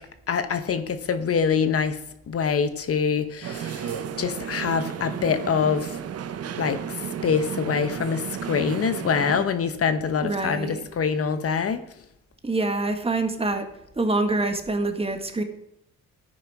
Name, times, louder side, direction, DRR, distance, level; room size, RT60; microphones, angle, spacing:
voice 1, 0.3-2.0 2.3-5.9 6.6-11.8, left 6 dB, 50° left, 10 dB, 1.0 m, -25 dB
sound 1, 3.4-9.5, right 8 dB, 55° right, 0.9 m, -33 dB
voice 2, 10.2-10.9 12.4-13.7 13.9-15.4, right 2 dB, 20° right, 6 dB, 1.7 m, -25 dB
11.0 x 9.4 x 4.8 m, 0.81 s
cardioid pair, 90°, 30 cm